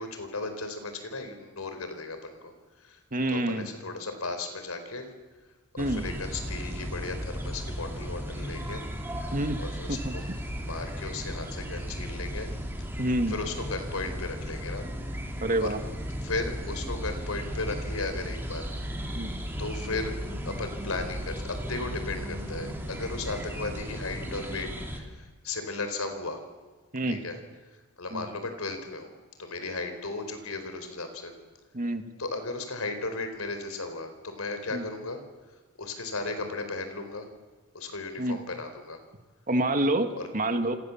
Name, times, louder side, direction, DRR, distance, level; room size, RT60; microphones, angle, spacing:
voice 1, 0.0-2.5 2.8-3.0 3.3-5.1 5.7-8.8 9.6-10.3 10.6-12.5 13.3-14.9 15.6-15.7 16.2-18.7 19.6-20.1 20.4-26.4 27.1-27.4 28.0-29.1 29.4-31.3 32.2-35.2 35.8-37.3 37.7-39.0 40.2-40.3, left 3 dB, 80° left, 7 dB, 4.4 m, -35 dB
voice 2, 3.1-3.7 5.8-6.0 9.3-9.6 9.9-10.2 13.0-13.3 15.4-15.8 19.1-19.3 26.9-27.2 28.1-28.3 31.7-32.0 34.7-34.8 38.2-38.4 39.5-40.1 40.3-40.7, right 1 dB, 40° right, 7 dB, 2.0 m, -27 dB
sound 1, 5.8-25.0, equal, 10° right, 3.6 m, -35 dB
28.5 x 26.0 x 7.3 m, 1.3 s
head